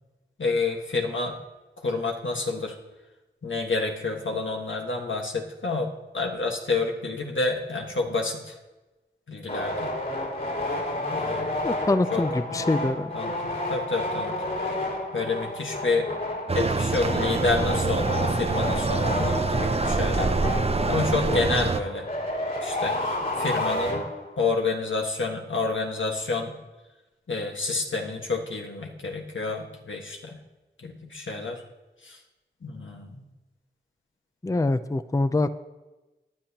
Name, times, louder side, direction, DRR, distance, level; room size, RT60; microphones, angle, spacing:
voice 1, 0.4-1.3 1.8-2.7 3.4-8.5 9.3-9.9 11.1-11.6 12.1-12.2 12.6-12.7 13.1-14.3 15.1-16.1 16.5-20.3 20.9-22.1 22.6-22.9 23.4-24.0 24.4-26.5 27.3-30.4 30.8-31.6 32.0-32.1 32.6-33.2, left 3 dB, 90° left, 1 dB, 1.6 m, -29 dB
sound 1, 9.5-24.5, left 1 dB, 60° left, 4.4 m, -31 dB
voice 2, 11.6-13.1 34.4-35.5, left 2 dB, 15° left, 12 dB, 0.4 m, -24 dB
sound 2, 16.5-21.8, right 3 dB, 30° right, 0.6 m, -25 dB
18.0 x 10.0 x 2.9 m, 1.1 s
wide cardioid pair, 50°, 19 cm